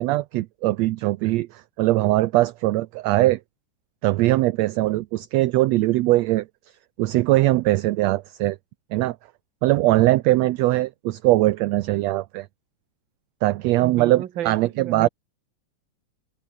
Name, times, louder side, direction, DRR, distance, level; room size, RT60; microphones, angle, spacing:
voice 1, 0.0-3.4 4.0-6.5 7.0-8.6 8.9-9.2 9.6-12.5 13.4-15.1, right 17 dB, 80° right, 1.6 m, -21 dB
voice 2, 13.8-15.1, right 11 dB, 50° right, 1.6 m, -33 dB
open air
omnidirectional pair, 3.6 m